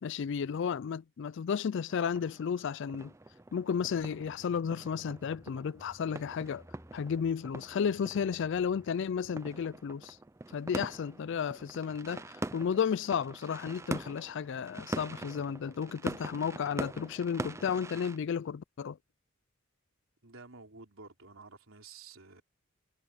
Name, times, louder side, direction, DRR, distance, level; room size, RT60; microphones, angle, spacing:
voice 1, 0.0-3.1 3.5-6.6 6.9-10.2 10.5-19.0, left 7 dB, 60° left, 0.4 m, -33 dB
sound 1, 1.9-18.2, right 2 dB, 15° right, 0.4 m, -43 dB
sound 2, 2.8-11.8 12.2-12.3, equal, 5° left, 5.1 m, -60 dB
voice 2, 20.2-22.4, right 4 dB, 75° right, 4.0 m, -51 dB
head